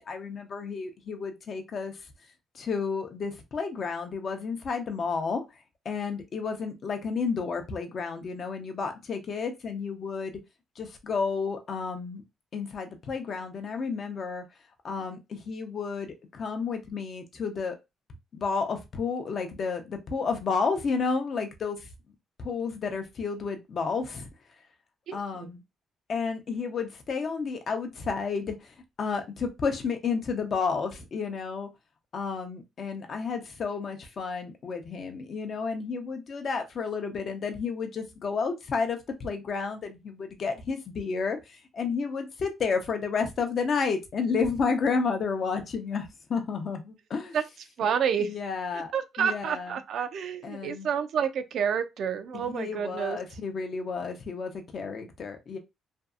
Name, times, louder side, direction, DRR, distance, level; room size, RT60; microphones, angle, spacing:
voice 1, 0.0-1.9 2.5-5.4 5.8-10.4 10.8-12.2 12.5-14.4 14.8-17.8 18.3-21.9 22.4-24.3 25.1-25.6 26.1-31.7 32.1-47.4 48.2-48.9 49.2-49.8 50.4-50.9 52.3-55.6, left 5 dB, 55° left, 0.6 m, -31 dB
voice 2, 47.8-48.3 48.9-53.2, right 7 dB, 70° right, 0.3 m, -29 dB
2.6 x 2.3 x 2.4 m
cardioid pair, 90°, 0 cm